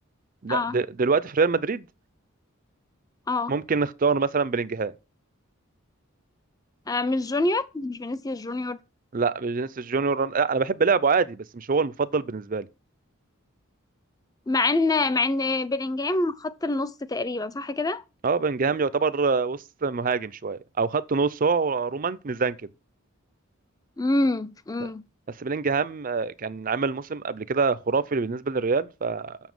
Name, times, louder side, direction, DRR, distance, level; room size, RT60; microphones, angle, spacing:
voice 1, 0.4-1.9 3.5-4.9 9.1-12.7 18.2-22.6 25.4-29.4, right 4 dB, 40° right, 0.5 m, -25 dB
voice 2, 6.9-8.8 14.5-18.0 24.0-25.0, left 2 dB, 15° left, 0.5 m, -26 dB
7.2 x 6.9 x 6.0 m
head